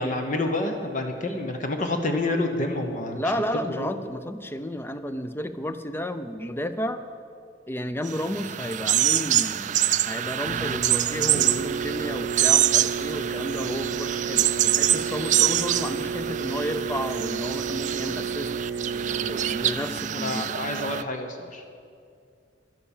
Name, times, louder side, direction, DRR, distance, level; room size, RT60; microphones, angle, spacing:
voice 1, 0.0-3.2 3.7-3.9 20.1-21.6, left 2 dB, 45° left, 5 dB, 1.1 m, -28 dB
voice 2, 3.1-7.0 7.7-9.7 10.0-18.5 19.3-20.5, equal, 15° left, 10 dB, 0.6 m, -32 dB
sound 1, 8.1-21.0, right 12 dB, 45° right, 0.3 m, -25 dB
sound 2, 10.4-19.7, right 5 dB, 85° right, 0.7 m, -32 dB
11.5 x 11.5 x 7.3 m, 2.3 s
head